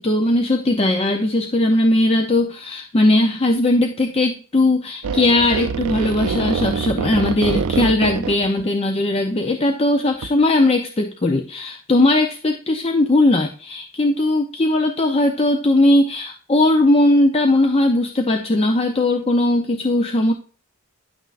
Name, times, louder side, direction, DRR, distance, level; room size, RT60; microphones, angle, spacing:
voice 1, 0.0-20.3, left 2 dB, 25° left, 4 dB, 0.5 m, -18 dB
sound 1, 5.0-8.6 10.2-10.3, right 6 dB, 80° right, 0.5 m, -24 dB
10.5 x 6.1 x 2.4 m, 0.38 s
head